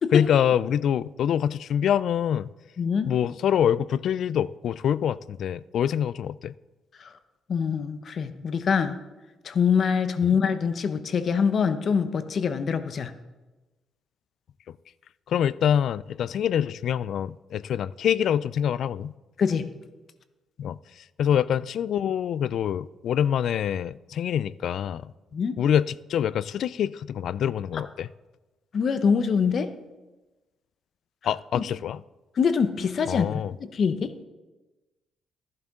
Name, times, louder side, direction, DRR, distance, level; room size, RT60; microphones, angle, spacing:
voice 1, 0.1-2.5 3.1-6.5 10.3-10.4 15.3-19.1 20.6-20.8 21.2-25.1 25.6-28.1 31.2-32.0 33.1-33.5, left 9 dB, 70° left, 0.3 m, -25 dB
voice 2, 2.8-3.1 7.0-7.1 7.5-9.0 9.4-13.1 19.4-19.7 25.3-25.6 28.7-29.7 31.5-31.6 32.4-34.1, left 6 dB, 55° left, 0.8 m, -24 dB
14.5 x 10.5 x 3.7 m
cardioid pair, 90°, 0 cm